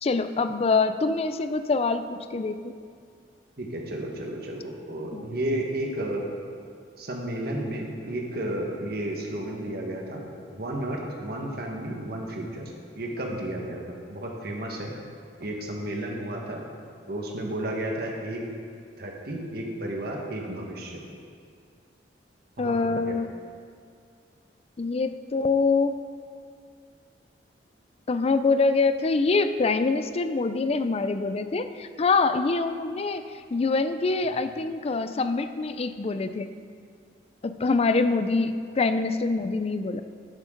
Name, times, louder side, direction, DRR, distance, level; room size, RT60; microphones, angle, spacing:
voice 1, 0.0-2.7 5.1-5.2 22.6-23.3 24.8-26.0 28.1-33.2 33.5-36.5 37.4-40.0, left 3 dB, 35° left, 10 dB, 0.4 m, -25 dB
voice 2, 3.6-6.3 7.0-13.8 14.1-14.9 15.4-16.6 17.1-18.4 19.0-21.0 22.6-23.2, right 1 dB, 60° right, 0 dB, 1.5 m, -32 dB
10.5 x 8.9 x 3.9 m, 2.2 s
head